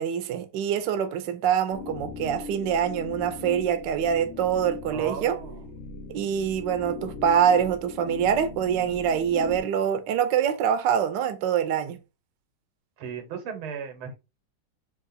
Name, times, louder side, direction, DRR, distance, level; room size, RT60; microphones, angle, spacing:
voice 1, 0.0-5.4 6.1-12.0, right 8 dB, 70° right, 1.2 m, -25 dB
sound 1, 1.7-9.6, left 4 dB, 90° left, 0.6 m, -39 dB
voice 2, 4.9-5.7 13.0-14.1, right 6 dB, 90° right, 2.0 m, -36 dB
3.8 x 3.0 x 4.0 m
omnidirectional pair, 2.2 m